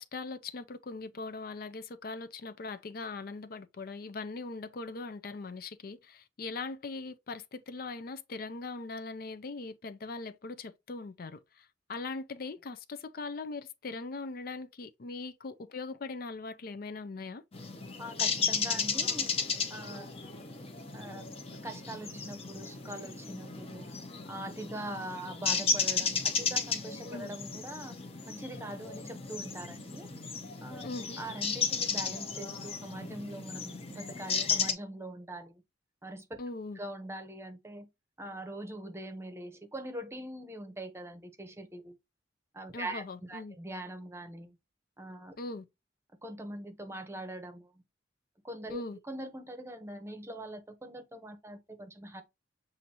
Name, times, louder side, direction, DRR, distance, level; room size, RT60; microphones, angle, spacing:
voice 1, 0.0-17.4 27.1-27.3 30.8-31.2 36.4-36.8 42.7-43.5 45.4-45.6 48.7-49.0, left 3 dB, 55° left, 0.5 m, -40 dB
sound 1, 17.5-34.7, left 5 dB, 35° left, 0.8 m, -34 dB
voice 2, 18.0-19.3 19.7-20.1 20.9-21.3 21.6-23.9 24.3-27.9 28.3-30.1 30.6-30.9 31.2-35.6 36.0-36.2 36.7-37.9 38.2-41.9 42.5-44.6 45.0-45.3 46.2-47.7 48.4-52.2, right 1 dB, 15° right, 0.8 m, -42 dB
6.9 x 2.6 x 2.8 m
head